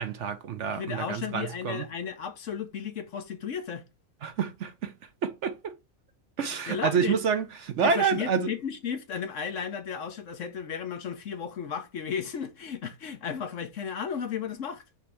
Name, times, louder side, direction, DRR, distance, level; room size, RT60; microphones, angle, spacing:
voice 1, 0.0-1.8 4.2-4.9 5.2-5.7 6.4-8.5, right 6 dB, 60° right, 1.0 m, -28 dB
voice 2, 0.7-3.8 6.7-7.2 7.8-14.8, left 7 dB, 60° left, 1.2 m, -34 dB
6.0 x 3.3 x 4.8 m
omnidirectional pair, 1.5 m